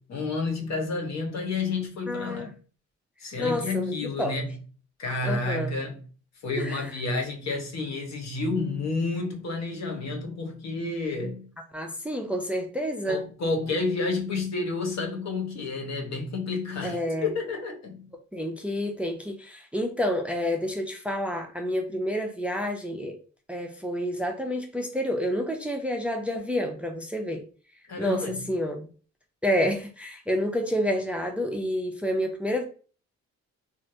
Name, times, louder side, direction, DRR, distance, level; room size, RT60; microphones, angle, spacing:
voice 1, 0.0-2.5 3.2-4.6 5.0-6.0 6.4-11.5 13.1-18.1 27.9-28.5, left 3 dB, 60° left, 1.0 m, -30 dB
voice 2, 2.1-2.5 3.4-4.3 5.2-5.7 6.6-6.9 11.7-13.2 16.8-17.3 18.3-23.2 23.5-27.4 28.0-28.9 29.4-32.6, equal, 5° right, 0.5 m, -29 dB
3.2 x 2.5 x 2.6 m
cardioid pair, 90°, 30 cm